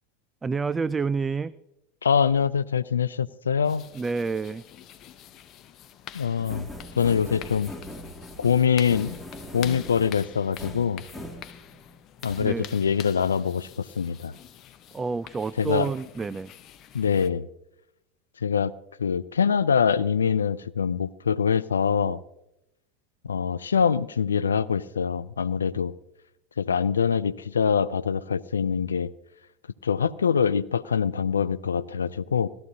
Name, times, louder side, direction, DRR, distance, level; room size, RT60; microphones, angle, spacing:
voice 1, 0.4-1.6 3.9-4.6 12.4-12.7 14.9-16.5, right 4 dB, 20° right, 18 dB, 0.3 m, -29 dB
voice 2, 2.0-3.8 6.1-6.7 7.0-7.7 8.4-9.2 9.5-11.0 12.2-14.4 15.6-15.9 16.9-17.5 18.4-18.7 19.0-22.2 23.2-25.9 26.6-29.1 29.8-32.5, left 7 dB, 85° left, 17 dB, 0.3 m, -24 dB
sound 1, 3.6-17.3, left 10 dB, 45° left, 0.8 m, -46 dB
sound 2, 6.4-11.9 12.2-12.5, left 1 dB, 5° left, 2.2 m, -41 dB
17.0 x 13.0 x 2.8 m, 0.86 s
hypercardioid pair, 80°, 0 cm